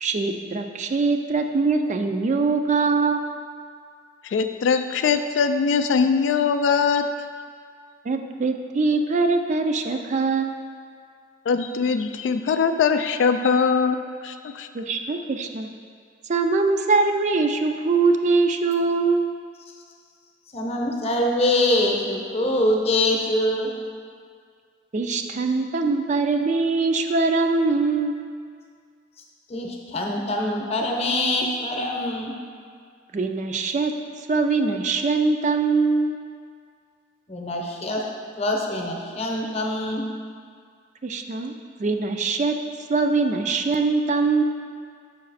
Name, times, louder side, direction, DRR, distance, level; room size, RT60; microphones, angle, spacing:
voice 1, 0.0-3.4 8.1-10.7 14.7-15.7 16.3-19.2 24.9-28.2 33.1-33.9 34.3-36.2 41.0-41.5 41.8-42.6 42.9-44.4, right 3 dB, 40° right, 5 dB, 0.4 m, -22 dB
voice 2, 4.2-7.1 11.5-14.0 14.2-14.7, left 5 dB, 80° left, 8 dB, 0.3 m, -21 dB
voice 3, 20.5-23.7 29.5-32.3 37.3-38.0 38.4-40.0, left 1 dB, 35° left, 0 dB, 0.8 m, -24 dB
6.5 x 5.0 x 4.0 m, 2.1 s
head